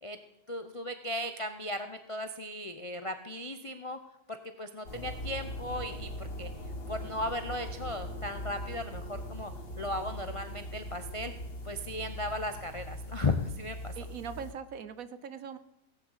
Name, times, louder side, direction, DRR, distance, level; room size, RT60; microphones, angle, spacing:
voice 1, 0.5-4.0 4.3-6.5 6.9-9.5 9.8-11.3 11.6-14.0, left 1 dB, 40° left, 7 dB, 0.4 m, -36 dB
sound 1, 4.9-14.5, equal, 85° left, 2.8 m, -41 dB
voice 2, 14.0-15.6, right 7 dB, 60° right, 13 dB, 1.1 m, -41 dB
17.0 x 8.0 x 8.0 m, 0.86 s
omnidirectional pair, 1.8 m